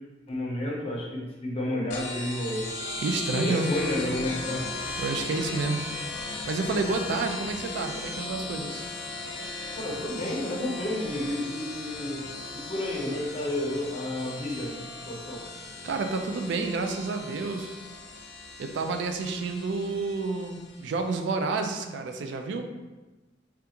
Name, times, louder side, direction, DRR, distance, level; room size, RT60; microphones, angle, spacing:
voice 1, 0.3-2.6 3.3-4.6 9.7-12.2 12.5-14.8 15.1-15.4, left 1 dB, 35° left, -3 dB, 0.7 m, -31 dB
sound 1, 1.9-21.1, left 2 dB, 70° left, 0.5 m, -37 dB
voice 2, 3.0-3.7 5.0-5.9 6.5-8.8 15.8-17.8 18.6-22.7, right 3 dB, 70° right, 6 dB, 0.3 m, -29 dB
3.4 x 2.4 x 2.8 m, 1.1 s
head